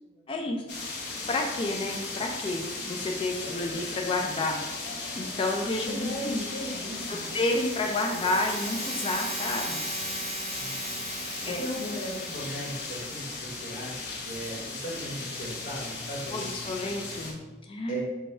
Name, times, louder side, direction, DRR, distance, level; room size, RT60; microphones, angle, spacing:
voice 1, 0.3-0.6 1.3-4.6 5.1-6.4 7.1-9.8 11.4-11.7 16.3-18.0, left 2 dB, 30° left, 2 dB, 0.4 m, -30 dB
sound 1, 0.7-17.3, left 3 dB, 70° left, 0.9 m, -37 dB
voice 2, 3.4-3.8 5.9-7.3 10.5-11.0 11.6-13.9 14.2-16.6 17.9-18.0, equal, 55° left, -4 dB, 1.2 m, -37 dB
sound 2, 7.0-13.1, right 1 dB, 15° right, 1.5 m, -38 dB
sound 3, 14.9-17.4, left 1 dB, 70° right, 1.2 m, -50 dB
5.3 x 2.2 x 4.2 m, 1.1 s
head